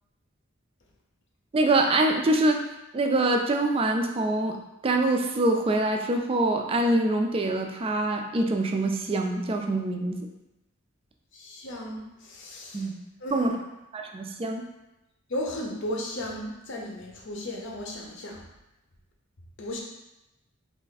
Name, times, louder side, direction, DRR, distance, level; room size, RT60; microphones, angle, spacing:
voice 1, 1.5-2.6 2.9-4.6 4.8-10.2 12.7-12.9 13.3-13.6 13.9-14.7, right 2 dB, 25° right, 3 dB, 0.3 m, -24 dB
voice 2, 11.3-12.9 13.2-13.5 15.3-18.4 19.6-19.8, left 1 dB, 60° left, 0 dB, 0.7 m, -35 dB
3.2 x 2.5 x 4.0 m, 0.94 s
head